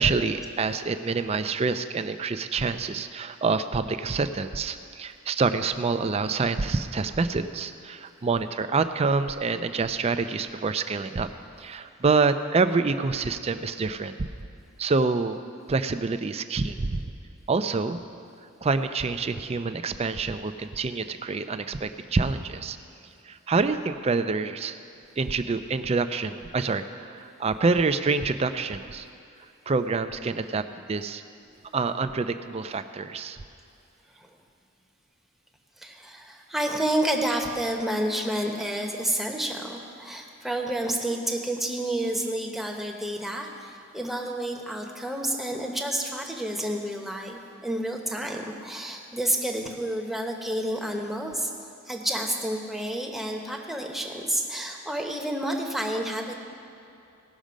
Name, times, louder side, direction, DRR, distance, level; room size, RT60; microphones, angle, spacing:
voice 1, 0.0-11.3 11.6-14.3 14.8-15.4 15.7-17.0 17.5-18.0 18.6-22.8 23.2-24.8 25.2-29.1 29.7-31.2 31.7-33.4, right 4 dB, 30° right, 10 dB, 0.4 m, -27 dB
voice 2, 35.8-51.5 51.9-56.3, right 1 dB, ahead, 1 dB, 0.9 m, -30 dB
17.5 x 6.3 x 5.1 m, 2.7 s
head